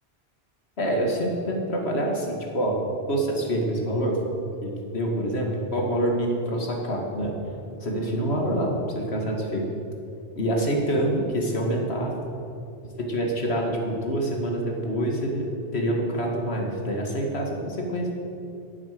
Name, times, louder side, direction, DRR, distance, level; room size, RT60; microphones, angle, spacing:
voice 1, 0.8-2.8 3.1-4.2 4.6-7.3 7.8-9.7 10.4-12.1 12.8-15.4 15.7-18.1, right 1 dB, 70° left, 0 dB, 2.2 m, -26 dB
11.5 x 7.5 x 9.3 m, 2.7 s
omnidirectional pair, 1.1 m